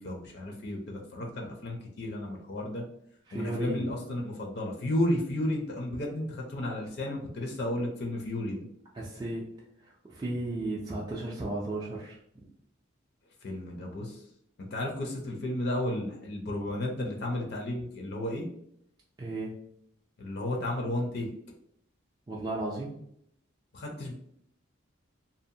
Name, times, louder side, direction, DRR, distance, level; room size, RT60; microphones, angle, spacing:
voice 1, 0.0-2.8 3.3-8.6 13.4-14.2 14.7-18.5 20.2-21.3 23.7-24.1, left 1 dB, 55° left, 1 dB, 0.5 m, -33 dB
voice 2, 3.3-3.8 8.9-9.5 10.1-12.2 19.2-19.5 22.3-22.9, right 2 dB, 20° right, -5 dB, 0.3 m, -34 dB
2.7 x 2.1 x 2.6 m, 0.70 s
head